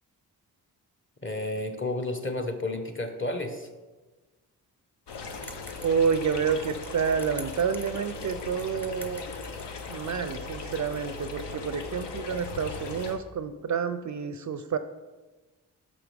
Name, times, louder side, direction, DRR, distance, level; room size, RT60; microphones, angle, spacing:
voice 1, 1.2-3.7, left 2 dB, 30° left, 4 dB, 1.0 m, -31 dB
sound 1, 5.1-13.2, left 3 dB, 75° left, 0.8 m, -38 dB
sound 2, 5.4-9.8, equal, 5° left, 0.7 m, -48 dB
voice 2, 5.8-9.2 9.9-14.8, right 6 dB, 45° right, 11 dB, 0.4 m, -29 dB
6.1 x 6.0 x 3.4 m, 1.2 s
supercardioid pair, 45°, 42 cm